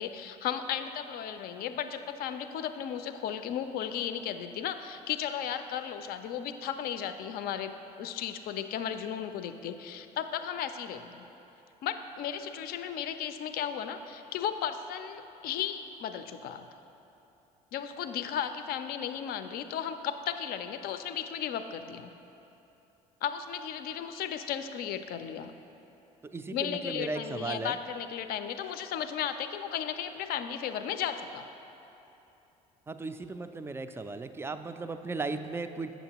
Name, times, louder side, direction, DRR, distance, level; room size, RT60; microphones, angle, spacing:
voice 1, 0.0-7.7 8.0-11.2 11.8-16.7 17.7-22.1 23.2-25.5 26.5-31.5, left 9 dB, 50° left, 9 dB, 0.4 m, -35 dB
voice 2, 26.2-27.8 32.9-35.9, right 3 dB, 15° right, 9 dB, 0.3 m, -36 dB
8.1 x 7.1 x 2.9 m, 2.9 s
hypercardioid pair, 60°, 19 cm